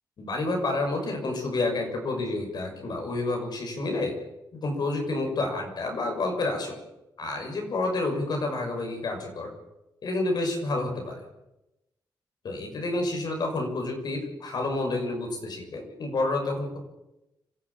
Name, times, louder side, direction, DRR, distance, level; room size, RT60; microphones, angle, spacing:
voice 1, 0.2-4.2 4.5-6.8 7.2-9.5 10.0-11.2 12.4-16.8, left 2 dB, 60° left, 3 dB, 6.4 m, -29 dB
26.0 x 14.0 x 8.5 m, 0.94 s
cardioid pair, 85°, 8 cm